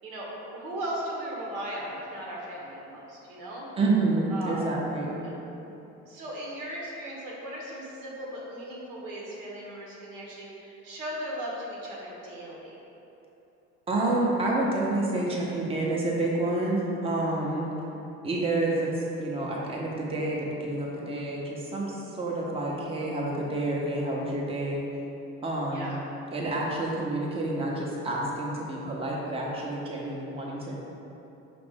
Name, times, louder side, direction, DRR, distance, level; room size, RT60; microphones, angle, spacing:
voice 1, 0.0-3.7 4.3-4.7 5.2-5.3 6.0-12.8 25.7-25.9, right 1 dB, 80° right, -4 dB, 1.1 m, -37 dB
voice 2, 3.8-5.2 13.9-17.7 18.2-24.9 25.4-25.9 26.3-30.8, right 2 dB, 20° right, -4 dB, 0.7 m, -28 dB
4.9 x 2.5 x 3.5 m, 3.0 s
supercardioid pair, 95°, 32 cm